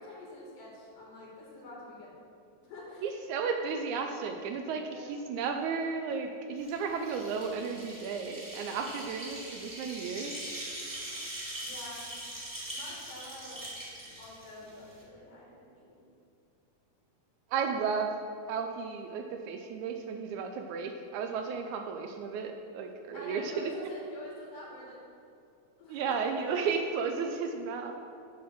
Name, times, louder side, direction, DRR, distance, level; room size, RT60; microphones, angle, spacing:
voice 1, 0.0-2.2 2.6-3.1 4.8-5.2 11.6-12.1 12.7-13.7 14.2-16.0 23.1-25.0 25.8-26.5, left 1 dB, 75° left, -5 dB, 3.6 m, -47 dB
voice 2, 3.0-10.4 10.9-11.3 17.5-18.1 18.5-23.7 25.9-27.9, right 5 dB, 80° right, 4 dB, 1.8 m, -34 dB
sound 1, 6.6-15.0, right 1 dB, 10° right, 1.4 m, -42 dB
9.3 x 4.0 x 6.7 m, 2.6 s
omnidirectional pair, 3.6 m